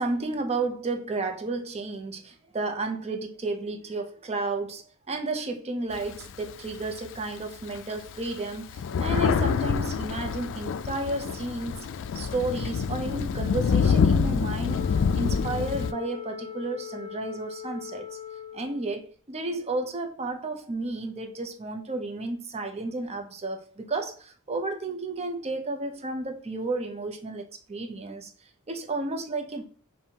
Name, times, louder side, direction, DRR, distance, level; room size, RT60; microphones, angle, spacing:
voice 1, 0.0-11.9 12.1-14.9 15.1-18.2 18.5-28.3 28.7-29.7, right 2 dB, 30° right, 0.6 m, -32 dB
Thunder, 5.9-7.2 7.7-7.8 8.1-15.9, left 6 dB, 60° left, 0.3 m, -26 dB
Wind instrument woodwind instrument, 14.6-19.0, left 9 dB, 25° left, 0.8 m, -40 dB
5.2 x 2.7 x 2.8 m
head